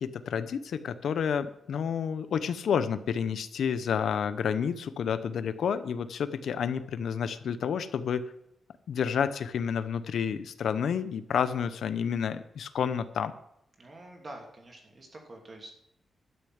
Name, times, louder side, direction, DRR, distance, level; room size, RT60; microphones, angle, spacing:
voice 1, 0.0-8.2 8.9-13.3, left 7 dB, 85° left, 13 dB, 0.7 m, -30 dB
voice 2, 13.8-15.9, right 1 dB, 30° right, 1 dB, 2.8 m, -47 dB
12.0 x 6.6 x 8.0 m, 0.77 s
wide cardioid pair, 165°, 0 cm